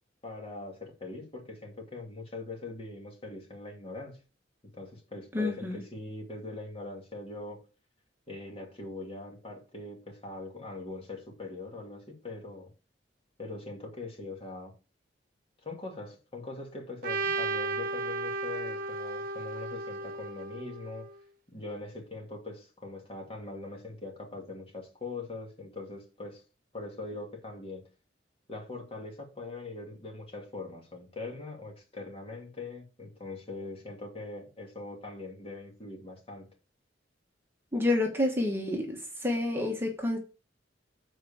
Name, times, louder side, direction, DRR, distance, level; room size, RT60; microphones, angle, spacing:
voice 1, 0.2-4.2 4.7-7.6 8.3-12.7 13.4-14.7 15.6-21.1 21.5-26.4 26.7-27.8 28.5-36.5, left 3 dB, 35° left, 2.5 m, -42 dB
voice 2, 5.3-5.8 37.7-40.2, left 2 dB, 15° right, 1.3 m, -29 dB
Trumpet, 17.0-21.2, right 3 dB, 50° right, 1.0 m, -34 dB
7.9 x 4.6 x 7.0 m
head